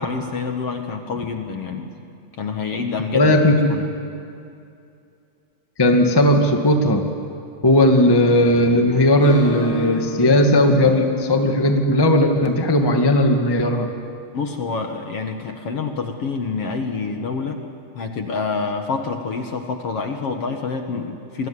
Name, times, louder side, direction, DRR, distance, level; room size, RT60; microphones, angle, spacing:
voice 1, 0.0-2.0 2.4-3.3 3.7-3.9 14.3-17.6 17.9-21.5, left 4 dB, 55° left, 4 dB, 1.7 m, -27 dB
voice 2, 3.1-3.5 5.8-7.0 7.6-13.9, left 1 dB, 40° left, 3 dB, 0.3 m, -16 dB
Acoustic guitar, 9.2-12.0, right 1 dB, 70° right, 9.6 m, -34 dB
28.0 x 21.5 x 9.8 m, 2.5 s
omnidirectional pair, 4.5 m